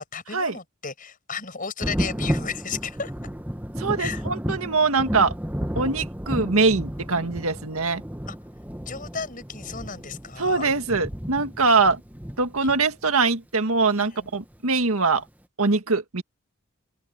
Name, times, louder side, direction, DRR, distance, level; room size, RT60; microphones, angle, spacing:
voice 1, 0.0-3.1 4.0-4.2 8.3-8.4 8.9-10.7 14.0-14.3, left 5 dB, 40° left, 7.4 m, -34 dB
Thunder, 1.8-13.2 14.5-14.6 15.2-15.3, equal, 10° right, 1.4 m, -32 dB
voice 2, 3.8-5.3 5.8-8.0 10.4-12.0 12.4-15.2 15.6-16.2, right 4 dB, 85° right, 1.9 m, -23 dB
open air
head